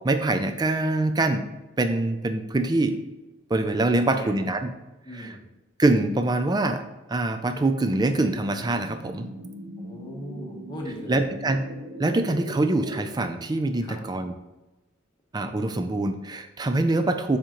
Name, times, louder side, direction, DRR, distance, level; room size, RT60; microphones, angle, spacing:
voice 1, 0.0-1.5 1.8-3.0 3.5-4.7 5.2-5.3 5.8-6.8 7.1-9.3 11.1-11.6 12.0-14.3 15.3-17.4, right 2 dB, 20° right, 8 dB, 0.4 m, -24 dB
voice 2, 3.9-4.4 5.0-5.4 9.8-11.2 13.8-14.0, equal, 20° left, 0 dB, 1.0 m, -39 dB
sound 1, 7.6-13.1, right 1 dB, 75° right, 0.7 m, -40 dB
7.2 x 5.0 x 3.0 m, 1.1 s
head